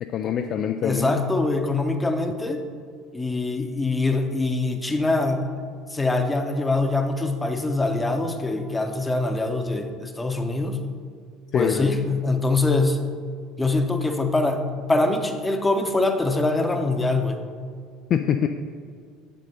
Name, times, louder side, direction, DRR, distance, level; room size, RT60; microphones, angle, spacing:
voice 1, 0.0-1.3 11.5-11.9 18.1-18.5, left 9 dB, 45° left, 6 dB, 0.3 m, -24 dB
voice 2, 0.8-2.6 3.1-10.8 11.5-13.0 13.6-17.4, left 2 dB, 15° left, 6 dB, 0.8 m, -24 dB
7.3 x 7.3 x 4.2 m, 2.1 s
figure-of-eight pair, 65°, 0 cm